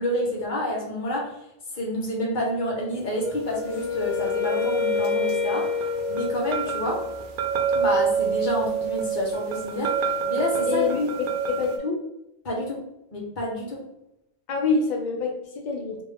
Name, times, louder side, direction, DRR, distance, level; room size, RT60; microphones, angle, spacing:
voice 1, 0.0-1.3 1.7-5.7 6.1-7.0 7.7-10.9 12.4-12.8 13.1-13.8, left 1 dB, 45° left, -2 dB, 1.0 m, -28 dB
Wind instrument woodwind instrument, 3.2-7.1, left 7 dB, 80° left, 1.0 m, -28 dB
sound 1, 3.4-11.8, right 6 dB, 60° right, 0.5 m, -28 dB
voice 2, 10.7-12.0 14.5-16.0, left 4 dB, 65° left, 2 dB, 0.4 m, -26 dB
3.4 x 2.5 x 3.3 m, 0.85 s
omnidirectional pair, 1.3 m